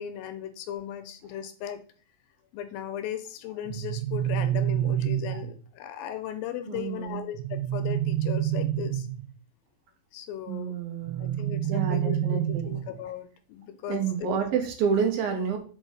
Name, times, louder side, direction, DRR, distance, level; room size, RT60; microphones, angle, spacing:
voice 1, 0.0-1.8 2.5-9.1 10.1-10.8 11.2-14.4, left 10 dB, 80° left, 9 dB, 2.3 m, -37 dB
sound 1, 3.7-5.6 7.3-9.3 11.1-13.0, right 11 dB, 90° right, 2.6 m, -28 dB
voice 2, 6.7-7.2 10.5-12.7 13.9-15.6, right 7 dB, 75° right, 4 dB, 3.0 m, -29 dB
6.5 x 4.7 x 4.6 m, 0.41 s
omnidirectional pair, 4.4 m